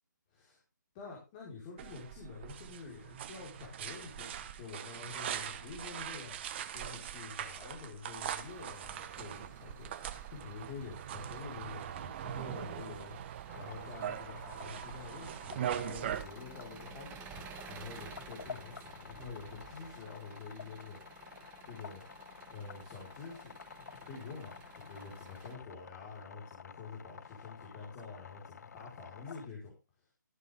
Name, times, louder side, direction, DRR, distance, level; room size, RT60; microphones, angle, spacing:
voice 1, 0.9-6.3 6.7-13.2 13.5-22.0 22.5-29.7, left 4 dB, 25° left, -3 dB, 4.7 m, -48 dB
sound 1, 1.8-16.2, right 10 dB, 35° right, 1.2 m, -41 dB
Engine, 8.4-25.5, right 9 dB, 15° right, 1.5 m, -54 dB
sound 2, 13.5-29.5, left 6 dB, 60° left, 0.6 m, -51 dB
14.5 x 11.0 x 3.6 m, 0.28 s
figure-of-eight pair, 145°, 10 cm